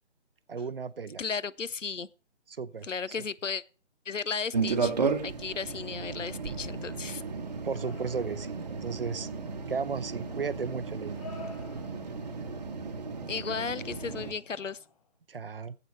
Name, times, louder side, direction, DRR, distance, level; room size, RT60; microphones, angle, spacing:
voice 1, 0.5-1.2 2.5-2.9 7.6-9.3 9.7-11.2 15.3-15.8, right 5 dB, 50° right, 0.5 m, -34 dB
voice 2, 1.2-2.1 2.8-3.6 4.1-7.2 13.3-14.8, left 5 dB, 85° left, 0.7 m, -35 dB
sound 1, 4.5-14.3, right 4 dB, 35° right, 1.0 m, -34 dB
sound 2, 7.7-8.7 9.9-10.0 10.9-12.3 13.8-13.9 14.3-15.1, left 3 dB, 30° left, 1.1 m, -48 dB
8.0 x 7.8 x 5.5 m
figure-of-eight pair, 150°, 37 cm